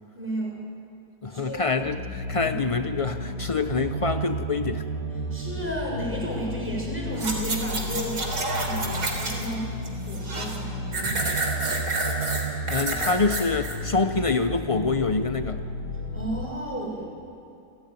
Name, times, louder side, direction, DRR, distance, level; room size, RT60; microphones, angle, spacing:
voice 1, 0.2-0.6 1.3-1.6 5.3-9.7 10.1-11.6 16.1-17.1, right 1 dB, 5° right, -2 dB, 7.1 m, -33 dB
voice 2, 1.2-4.9 8.8-9.0 11.0-11.2 12.7-15.6, left 4 dB, 60° left, 8 dB, 0.3 m, -26 dB
sound 1, 1.7-16.4, equal, 90° left, 8.1 m, -33 dB
sound 2, 7.2-9.5 9.8-10.6 10.9-13.8 14.2-14.3, right 2 dB, 75° right, 4.1 m, -29 dB
28.5 x 18.5 x 9.7 m, 2.5 s
omnidirectional pair, 1.7 m